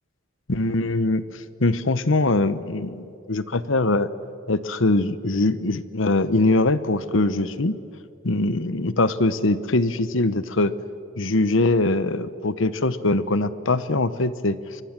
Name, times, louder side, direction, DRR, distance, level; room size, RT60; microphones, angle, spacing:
voice 1, 0.5-4.1 4.5-7.8 8.2-10.7 11.2-14.8, left 2 dB, 75° left, 14 dB, 0.9 m, -22 dB
27.5 x 23.5 x 7.4 m, 2.6 s
head